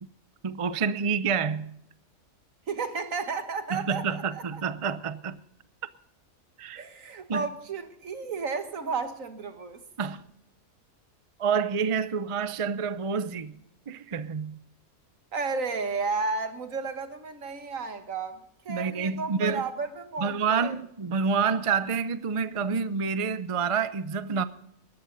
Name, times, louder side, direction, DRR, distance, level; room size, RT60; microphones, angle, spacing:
voice 1, 0.4-1.8 3.7-5.4 6.6-6.8 7.3-7.5 10.0-10.2 11.4-13.6 13.9-14.6 18.7-19.6 20.2-24.4, right 6 dB, 40° right, 0.5 m, -28 dB
voice 2, 2.7-4.6 6.8-9.8 15.3-20.8, right 4 dB, 70° right, 1.8 m, -33 dB
19.5 x 14.0 x 4.0 m
omnidirectional pair, 1.4 m